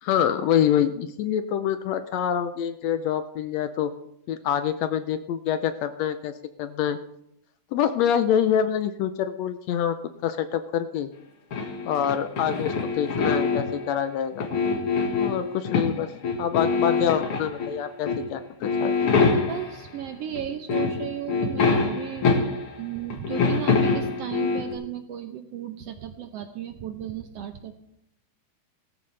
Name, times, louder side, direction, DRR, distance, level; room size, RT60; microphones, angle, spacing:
voice 1, 0.0-3.9 4.3-6.3 6.6-7.0 7.7-10.0 10.2-11.1 11.8-14.5 15.1-16.1 16.4-19.2, left 9 dB, 75° left, 10 dB, 1.7 m, -26 dB
sound 1, 11.5-13.9 14.3-16.0 16.2-17.7 18.1-18.3 18.6-19.8 20.3-20.4 20.7-22.8 23.1-24.7, left 4 dB, 50° left, 2.3 m, -24 dB
voice 2, 19.5-22.3 22.8-27.8, right 10 dB, 70° right, 8 dB, 1.5 m, -35 dB
17.0 x 14.0 x 3.3 m, 0.77 s
omnidirectional pair, 3.4 m